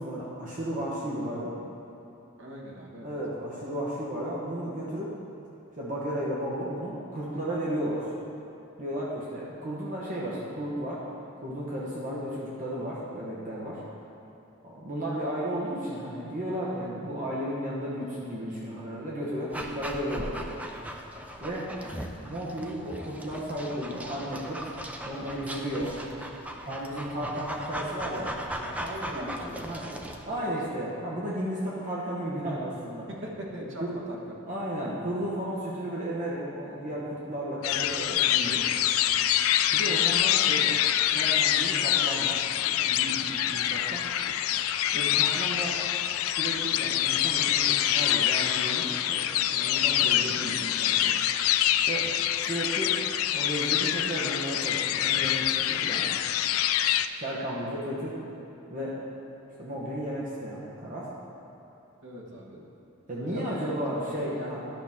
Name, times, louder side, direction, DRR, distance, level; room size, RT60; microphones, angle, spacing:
voice 1, 0.0-1.6 3.0-5.1 5.8-8.1 8.8-11.0 11.4-13.8 14.6-20.6 21.4-21.9 22.2-24.7 25.1-26.0 26.7-28.7 29.1-29.8 30.3-33.1 33.8-34.0 34.5-38.6 39.7-44.0 44.9-45.8 46.3-51.1 51.9-52.1 52.4-52.9 53.3-56.2 57.1-58.2 58.7-59.0 59.6-61.1 63.1-64.7, equal, 40° right, -6 dB, 1.1 m, -34 dB
voice 2, 2.4-3.2 28.8-30.8 33.1-34.4 62.0-62.6 63.1-64.7, equal, 60° right, -2 dB, 1.4 m, -41 dB
Dog, 19.5-30.2, right 1 dB, 5° right, 0.4 m, -38 dB
sound 1, 37.6-57.1, left 11 dB, 70° left, 0.3 m, -26 dB
12.0 x 5.9 x 3.6 m, 2.9 s
head